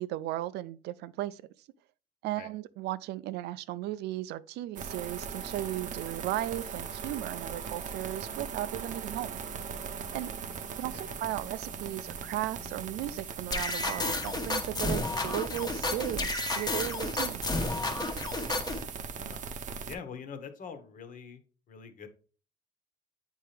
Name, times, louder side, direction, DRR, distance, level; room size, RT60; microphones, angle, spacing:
voice 1, 0.0-1.4 2.2-9.4 10.1-10.3 10.8-17.4, right 14 dB, 80° right, 0.5 m, -36 dB
sound 1, 4.8-20.0, right 6 dB, 50° right, 0.7 m, -39 dB
sound 2, 9.5-16.1, left 2 dB, 80° left, 1.2 m, -54 dB
sound 3, 13.5-18.8, left 2 dB, 25° left, 1.1 m, -32 dB
voice 2, 19.0-19.4 19.8-21.4 21.7-22.1, left 6 dB, 55° left, 1.3 m, -44 dB
8.3 x 4.4 x 3.4 m
cardioid pair, 110°, 17 cm